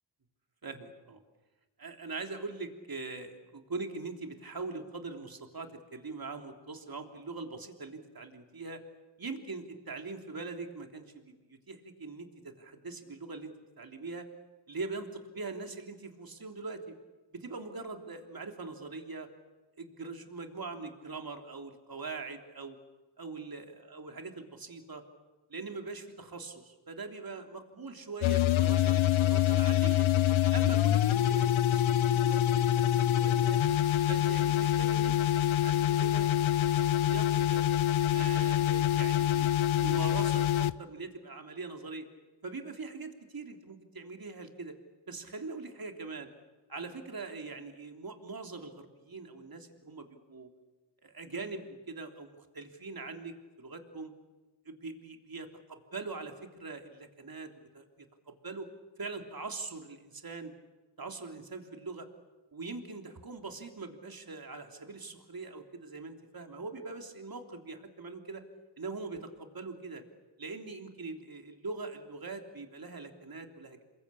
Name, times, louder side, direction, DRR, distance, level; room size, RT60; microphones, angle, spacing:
voice 1, 0.6-1.2 1.8-8.8 9.2-14.3 14.7-15.1 15.3-16.9 17.3-19.3 19.8-22.8 23.2-25.0 25.5-30.1 30.5-33.6 34.1-37.7 38.1-39.5 39.8-42.1 42.4-44.8 45.1-46.3 46.7-50.5 51.0-54.1 54.6-58.7 59.0-60.5 61.0-62.1 62.5-68.4 68.8-70.0 70.4-73.8, right 3 dB, 45° right, 5 dB, 3.3 m, -42 dB
sound 1, 28.2-40.7, left 12 dB, 75° left, 0.8 m, -26 dB
27.5 x 21.5 x 8.5 m, 1.2 s
cardioid pair, 60°, 48 cm